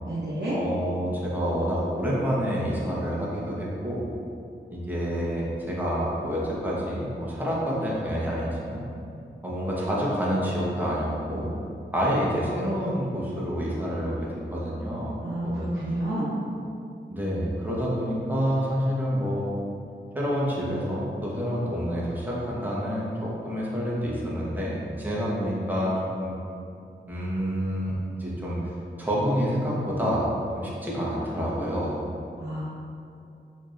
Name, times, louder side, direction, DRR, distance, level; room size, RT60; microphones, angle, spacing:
voice 1, 0.0-0.6 15.2-16.3 32.4-32.6, right 1 dB, 65° right, -10 dB, 0.8 m, -29 dB
voice 2, 0.5-4.1 4.7-8.8 9.4-11.5 11.9-15.1 15.4-15.7 17.1-19.5 20.1-26.4 27.1-28.7 29.0-30.3 30.5-32.0, equal, 10° right, -6 dB, 1.0 m, -28 dB
4.5 x 2.8 x 2.5 m, 2.6 s
cardioid pair, 40°, 20 cm